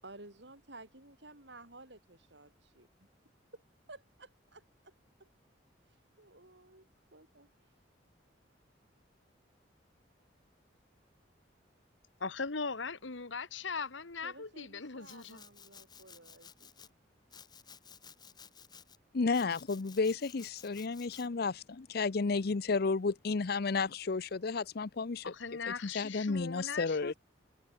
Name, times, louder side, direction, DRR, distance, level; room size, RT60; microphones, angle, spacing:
voice 1, 0.0-3.1 3.5-3.6 3.9-4.9 5.2-5.3 6.2-7.5 14.2-16.9 27.0-27.2, right 2 dB, 65° right, 7.6 m, -54 dB
voice 2, 12.2-15.4 25.2-27.1, left 4 dB, 85° left, 1.6 m, -39 dB
Domestic sounds home sounds, 15.0-16.9 17.3-19.0 19.3-21.3, left 7 dB, 20° left, 2.2 m, -55 dB
voice 3, 19.1-25.3 25.7-27.1, left 4 dB, 55° left, 0.6 m, -32 dB
head